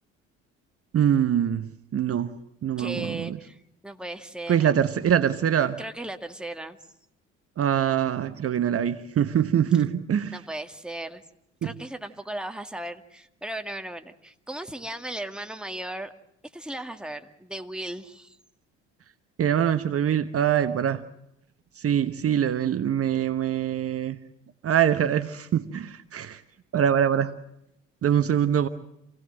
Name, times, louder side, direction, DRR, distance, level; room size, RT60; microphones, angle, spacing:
voice 1, 0.9-2.3 2.6-3.4 4.5-5.8 7.6-10.4 11.6-11.7 19.4-21.0 21.8-24.2 24.6-26.4 26.7-27.3 28.0-28.7, right 9 dB, 40° right, 11 dB, 1.2 m, -24 dB
voice 2, 2.8-4.7 5.8-6.8 10.3-11.2 11.6-16.1 16.5-18.4, right 1 dB, ahead, 5 dB, 2.0 m, -36 dB
27.0 x 17.5 x 7.6 m, 0.80 s
hypercardioid pair, 60°, 35 cm